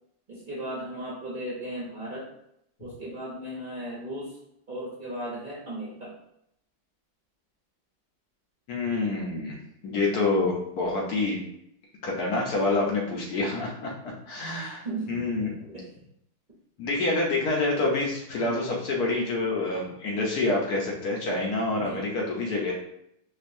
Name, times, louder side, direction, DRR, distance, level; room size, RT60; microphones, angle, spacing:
voice 1, 0.3-2.3 2.8-4.4 4.7-6.1 14.5-15.9 18.4-18.7 21.8-22.1, right 1 dB, 50° right, -7 dB, 0.5 m, -36 dB
voice 2, 8.7-9.6 9.8-11.4 12.0-13.9 14.3-15.5 16.8-22.7, left 2 dB, 65° left, -2 dB, 1.1 m, -27 dB
4.3 x 2.4 x 2.6 m, 0.76 s
omnidirectional pair, 2.1 m